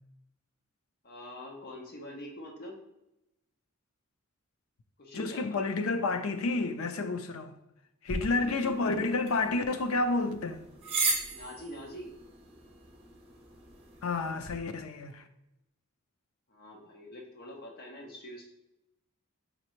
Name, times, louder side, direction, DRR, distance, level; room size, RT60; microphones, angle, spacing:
voice 1, 1.0-2.8 5.0-5.6 8.3-9.0 11.3-12.1 16.5-18.5, equal, 45° left, 0.9 m, -44 dB
voice 2, 5.1-7.5 8.0-10.6 14.0-15.2, left 3 dB, 70° left, 0.5 m, -30 dB
sound 1, 8.1-14.5, right 3 dB, 30° right, 0.9 m, -37 dB
5.2 x 3.3 x 3.1 m
head